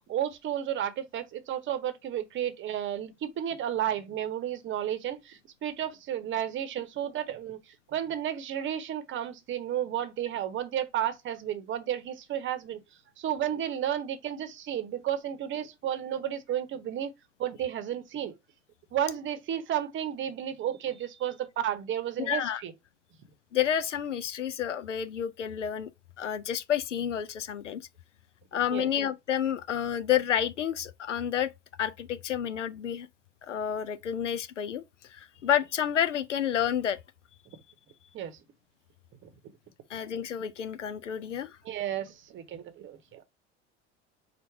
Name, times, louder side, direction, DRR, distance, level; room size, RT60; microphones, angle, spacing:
voice 1, 0.1-12.8 13.2-17.1 17.4-18.3 18.9-22.7 28.7-28.9 38.1-38.4 39.2-39.3 41.6-43.2, right 10 dB, 35° right, 0.9 m, -32 dB
voice 2, 22.2-22.6 23.5-25.9 26.2-27.8 28.5-31.5 31.8-33.1 33.5-34.8 35.1-37.0 39.9-41.6, left 9 dB, 85° left, 0.5 m, -30 dB
4.4 x 2.5 x 4.5 m
figure-of-eight pair, 75°, 35 cm